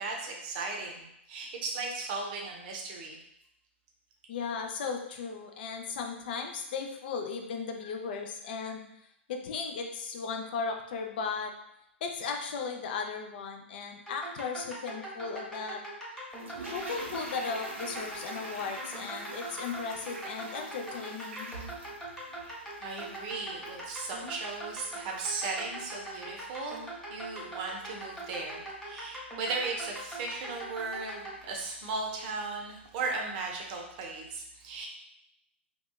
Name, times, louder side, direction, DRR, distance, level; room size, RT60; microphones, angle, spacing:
voice 1, 0.0-3.2 22.4-34.9, right 3 dB, 40° right, 0 dB, 0.6 m, -37 dB
voice 2, 4.3-8.8 9.3-11.5 12.0-15.8 16.7-21.5, left 5 dB, 50° left, 4 dB, 0.4 m, -36 dB
sound 1, 14.1-31.4, right 1 dB, 5° left, 0.8 m, -42 dB
Toilet flush, 16.3-23.4 23.7-23.8, right 2 dB, 85° right, 0.5 m, -44 dB
2.7 x 2.2 x 2.2 m, 0.79 s
figure-of-eight pair, 110°, 7 cm